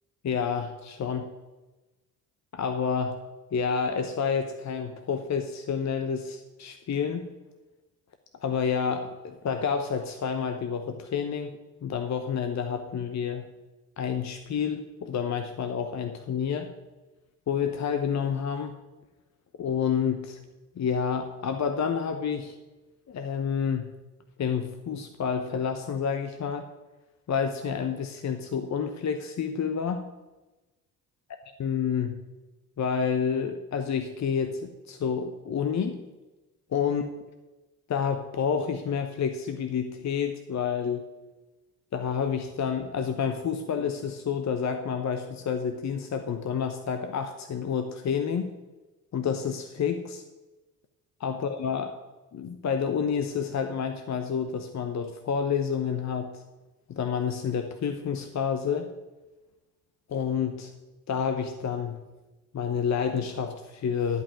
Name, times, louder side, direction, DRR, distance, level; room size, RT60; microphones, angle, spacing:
voice 1, 0.2-1.3 2.5-3.2 3.5-7.3 8.4-13.5 14.0-16.7 17.5-18.8 19.6-20.4 20.8-22.6 23.1-23.9 24.4-26.7 27.3-30.0 31.6-32.2 32.8-36.0 36.7-37.1 37.9-41.0 41.9-48.5 49.1-50.2 51.2-51.9 52.3-56.4 56.9-58.9 60.1-60.7 61.1-62.0 62.5-64.2, left 7 dB, 35° left, 7 dB, 1.0 m, -29 dB
11.0 x 5.5 x 7.7 m, 1.1 s
hypercardioid pair, 50°, 45 cm